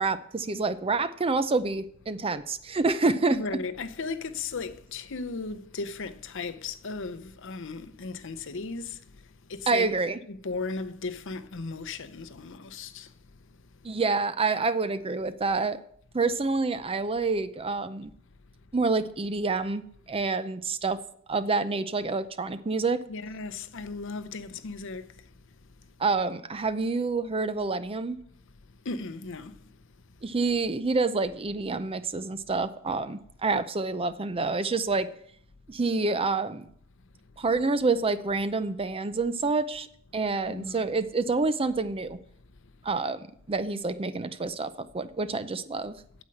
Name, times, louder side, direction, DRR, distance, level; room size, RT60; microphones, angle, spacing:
voice 1, 0.0-3.4 9.7-10.2 13.8-15.8 16.1-18.1 18.7-21.0 21.3-23.0 26.0-28.2 30.2-35.1 35.7-36.7 37.4-39.9 40.1-42.2 42.8-43.2 43.5-46.0, right 3 dB, 25° right, 0.6 m, -27 dB
voice 2, 3.3-9.9 10.3-13.1 23.1-25.3 25.8-25.9 28.7-29.8 40.5-40.8, left 3 dB, 65° left, 0.7 m, -36 dB
9.3 x 8.0 x 7.7 m
head